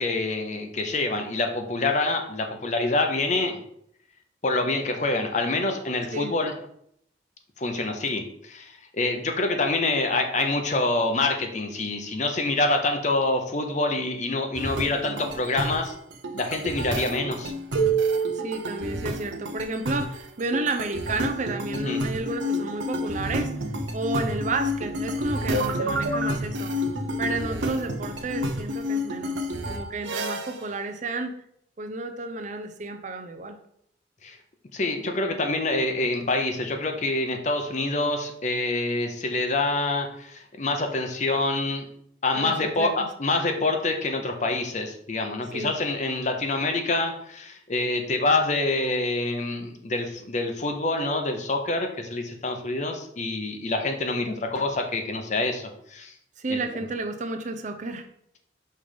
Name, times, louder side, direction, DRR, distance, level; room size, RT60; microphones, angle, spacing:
voice 1, 0.0-3.6 4.4-6.5 7.6-15.9 16.3-17.5 21.7-22.0 34.2-34.4 34.7-41.9 42.2-56.1 56.5-56.9, left 2 dB, 40° left, 5 dB, 0.7 m, -26 dB
sound 1, 14.5-30.7, right 1 dB, 85° right, 0.7 m, -29 dB
voice 2, 18.4-23.5 23.9-26.7 27.2-29.4 29.7-31.3 31.8-33.6 42.3-42.9 45.5-45.8 56.4-58.1, right 2 dB, 40° right, 7 dB, 0.5 m, -31 dB
sound 2, 23.2-28.5, right 1 dB, 65° left, 1.5 m, -37 dB
5.5 x 3.4 x 5.0 m, 0.69 s
head